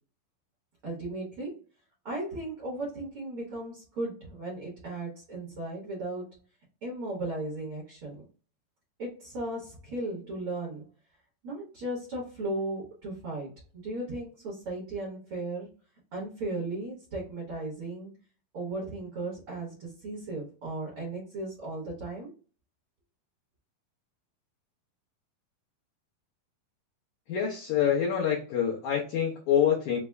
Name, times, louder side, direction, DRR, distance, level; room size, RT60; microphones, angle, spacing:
voice 1, 0.8-1.6 2.0-6.3 6.8-8.2 9.0-10.9 11.4-15.7 16.1-18.1 18.5-22.3, right 2 dB, 60° right, 1.4 m, -36 dB
voice 2, 27.3-30.0, left 8 dB, 85° left, 1.7 m, -26 dB
5.7 x 2.1 x 2.2 m
omnidirectional pair, 4.2 m